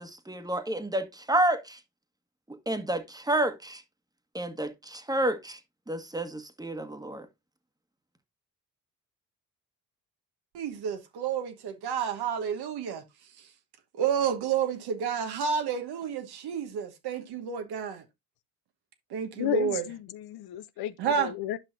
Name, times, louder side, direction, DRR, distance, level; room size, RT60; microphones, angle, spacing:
voice 1, 0.0-1.8 2.7-3.8 4.3-5.6 5.9-7.2, right 1 dB, 10° right, 1.4 m, -29 dB
voice 2, 10.5-13.0 13.9-18.0 19.1-19.8 21.0-21.3, right 7 dB, 70° right, 1.3 m, -30 dB
voice 3, 19.3-21.6, left 13 dB, 65° left, 0.7 m, -33 dB
10.5 x 5.7 x 2.5 m
hypercardioid pair, 50°, 40 cm